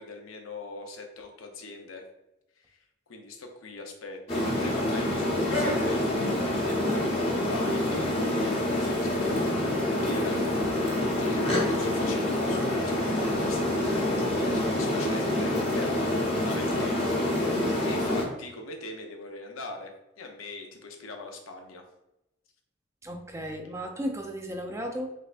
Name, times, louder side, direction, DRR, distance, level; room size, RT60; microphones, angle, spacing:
voice 1, 0.0-2.0 2.6-2.8 3.1-6.2 6.5-10.9 11.2-16.0 16.4-17.6 17.9-21.8, left 3 dB, 90° left, 3 dB, 0.7 m, -41 dB
sound 1, 4.3-18.2, left 1 dB, 30° left, 0.8 m, -27 dB
voice 2, 23.0-25.1, equal, 15° right, 3 dB, 0.4 m, -34 dB
3.4 x 3.2 x 2.5 m, 0.91 s
head